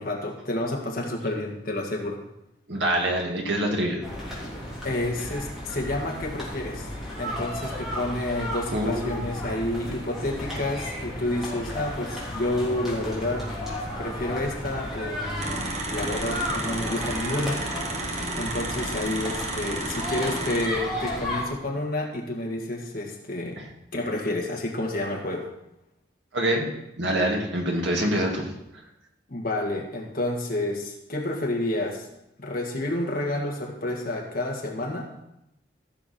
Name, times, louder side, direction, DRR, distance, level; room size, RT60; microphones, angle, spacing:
voice 1, 0.0-2.2 4.8-6.9 7.2-13.5 13.8-17.6 18.4-23.6 23.9-25.5 29.3-32.1 32.4-35.1, left 1 dB, 50° left, 1 dB, 1.8 m, -29 dB
voice 2, 2.7-4.0 8.7-9.3 23.6-23.7 26.3-26.7 27.0-28.5, right 1 dB, 70° right, 0 dB, 2.1 m, -25 dB
sound 1, 4.0-21.4, left 1 dB, ahead, 3.2 m, -34 dB
sound 2, 15.4-20.7, right 2 dB, 35° right, 1.4 m, -32 dB
15.0 x 7.0 x 4.3 m, 0.85 s
head